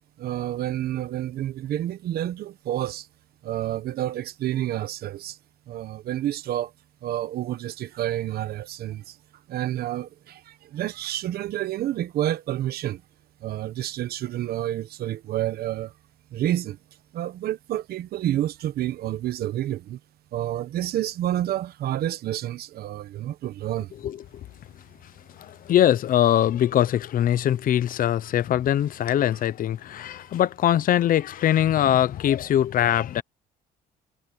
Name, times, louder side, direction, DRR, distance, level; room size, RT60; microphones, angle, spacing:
voice 1, 0.2-3.1 3.4-5.4 5.7-6.7 7.0-9.2 9.5-13.0 13.4-15.9 16.3-16.8 17.1-20.0 20.3-23.9, right 13 dB, 65° right, 1.2 m, -29 dB
voice 2, 25.4-33.2, left 11 dB, 55° left, 0.9 m, -22 dB
cardioid pair, 110°, 17 cm